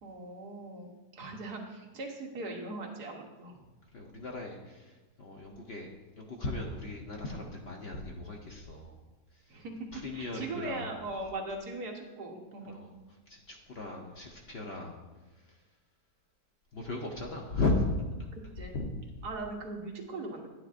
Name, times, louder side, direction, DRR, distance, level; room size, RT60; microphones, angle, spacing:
voice 1, 0.0-3.6 9.5-12.7 18.3-18.8 19.2-20.5, right 2 dB, 75° right, 1 dB, 1.6 m, -40 dB
voice 2, 3.9-5.9 6.2-9.0 9.3-9.6 9.9-10.9 12.7-12.9 13.3-15.0 15.3-15.6 16.7-17.9 18.7-18.9, left 2 dB, 50° left, 0 dB, 0.8 m, -36 dB
10.0 x 9.6 x 2.5 m, 1.2 s
omnidirectional pair, 1.7 m